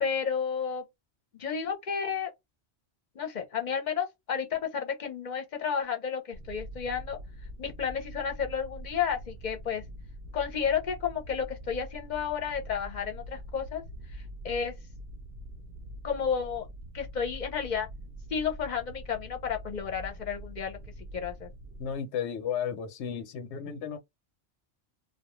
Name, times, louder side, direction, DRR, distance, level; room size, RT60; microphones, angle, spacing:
voice 1, 0.0-0.8 1.4-2.3 3.2-7.2 7.6-9.8 10.3-13.8 14.4-14.7 16.0-16.7 16.9-17.9 18.3-20.8 21.1-21.5, left 7 dB, 50° left, 0.7 m, -31 dB
sound 1, 6.3-22.0, equal, 65° right, 0.7 m, -44 dB
voice 2, 21.8-24.0, left 8 dB, 90° left, 0.9 m, -33 dB
2.3 x 2.2 x 2.9 m
omnidirectional pair, 1.1 m